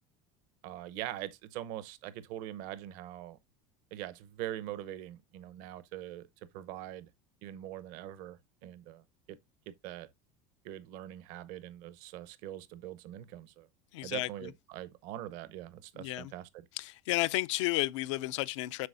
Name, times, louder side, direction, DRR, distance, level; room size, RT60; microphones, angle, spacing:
voice 1, 0.6-3.4 3.9-6.3 6.5-7.1 7.4-9.4 9.7-10.1 10.6-13.7 14.0-16.5, right 13 dB, 60° right, 0.8 m, -43 dB
voice 2, 13.9-14.5 15.9-16.3 16.7-18.9, left 19 dB, 90° left, 0.5 m, -32 dB
7.8 x 6.1 x 2.5 m
supercardioid pair, 150°, 15 cm